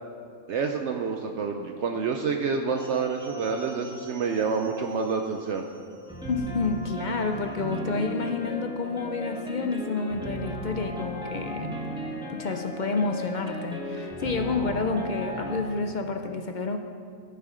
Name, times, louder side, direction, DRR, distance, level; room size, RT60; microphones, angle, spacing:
voice 1, 0.5-5.7, right 5 dB, 65° right, 4 dB, 0.9 m, -28 dB
sound 1, 2.8-15.6, equal, 5° right, 1.2 m, -37 dB
voice 2, 6.3-11.7 12.3-16.8, left 4 dB, 55° left, 5 dB, 0.5 m, -29 dB
14.0 x 6.8 x 5.0 m, 2.3 s
omnidirectional pair, 1.4 m